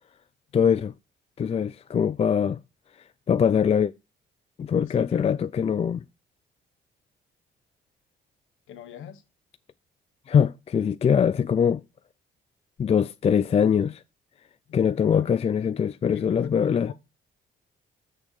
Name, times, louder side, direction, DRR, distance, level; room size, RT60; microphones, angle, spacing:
voice 1, 0.5-0.9 1.4-2.6 3.3-3.9 4.6-6.0 10.3-11.8 12.8-14.0 14.7-16.9, left 7 dB, 30° left, 0.4 m, -22 dB
voice 2, 4.8-5.4 8.7-9.2 14.7-15.4 16.1-16.9, left 9 dB, 85° left, 1.3 m, -41 dB
6.3 x 6.2 x 6.5 m
cardioid pair, 90°, 20 cm